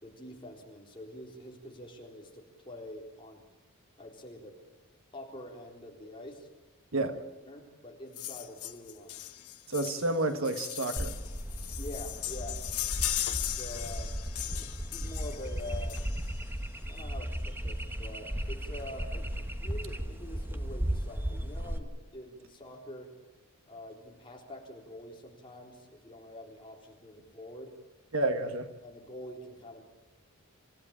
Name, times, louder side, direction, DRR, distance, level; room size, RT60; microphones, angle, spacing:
voice 1, 0.0-3.4 4.0-4.5 5.1-6.5 6.9-7.1 7.4-9.2 11.8-12.6 13.5-14.1 14.4-16.0 16.9-23.1 23.7-27.7 28.8-29.8, left 1 dB, 25° left, 0 dB, 3.8 m, -46 dB
sound 1, 8.1-16.5 17.6-17.7 18.0-18.1 18.3-18.5 18.8-19.4 19.9-20.0, left 14 dB, 90° left, 1.1 m, -38 dB
voice 2, 9.7-11.1 28.1-28.7, right 2 dB, 65° right, 8 dB, 1.4 m, -30 dB
sound 2, 11.0-21.8, equal, 10° right, 1.2 m, -36 dB
27.5 x 15.0 x 8.8 m, 1.1 s
head